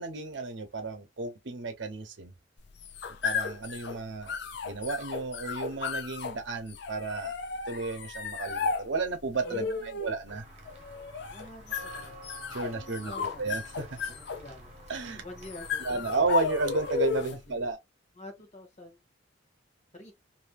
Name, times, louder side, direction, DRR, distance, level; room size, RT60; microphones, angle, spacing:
voice 1, 0.0-2.3 3.2-4.4 4.6-7.4 7.7-10.4 12.5-14.0 14.9-15.2 15.8-17.8, right 3 dB, 70° right, 0.7 m, -33 dB
sound 1, 2.6-17.5, left 6 dB, 60° left, 0.5 m, -35 dB
voice 2, 9.4-10.4 11.3-12.2 12.7-13.6 14.0-14.7 15.0-16.1 17.5-17.6 18.2-19.0 19.9-20.1, left 1 dB, 35° left, 1.1 m, -47 dB
Walk footsteps / Bell, 10.3-17.0, right 3 dB, 35° right, 1.0 m, -50 dB
3.4 x 2.6 x 2.4 m
head